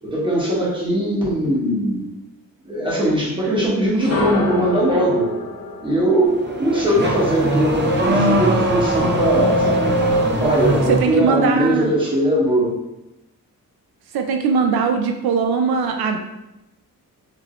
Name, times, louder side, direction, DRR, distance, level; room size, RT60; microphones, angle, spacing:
voice 1, 0.0-2.0 2.6-5.3 5.8-9.9 10.4-12.7, right 1 dB, 15° right, -6 dB, 1.1 m, -20 dB
sound 1, 3.9-7.9, left 2 dB, 40° left, 1.5 m, -28 dB
Car / Accelerating revving vroom, 6.2-11.3, right 1 dB, 30° right, 0.5 m, -20 dB
voice 2, 10.9-11.9 14.1-16.2, right 5 dB, 90° right, 4 dB, 0.5 m, -20 dB
4.4 x 2.7 x 3.1 m, 0.94 s
wide cardioid pair, 180°, 36 cm